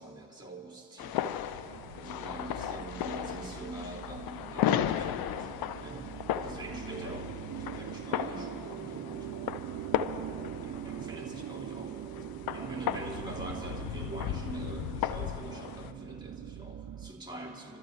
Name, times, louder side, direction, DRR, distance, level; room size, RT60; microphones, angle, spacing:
voice 1, 0.0-1.4 1.9-6.1 6.4-9.5 10.6-12.0 12.5-17.8, right 2 dB, 10° right, -2 dB, 3.1 m, -44 dB
sound 1, 1.0-15.9, left 10 dB, 70° left, 0.7 m, -36 dB
sound 2, 1.5-17.1, right 10 dB, 50° right, 0.7 m, -42 dB
27.5 x 13.5 x 3.3 m, 2.3 s
hypercardioid pair, 45°, 38 cm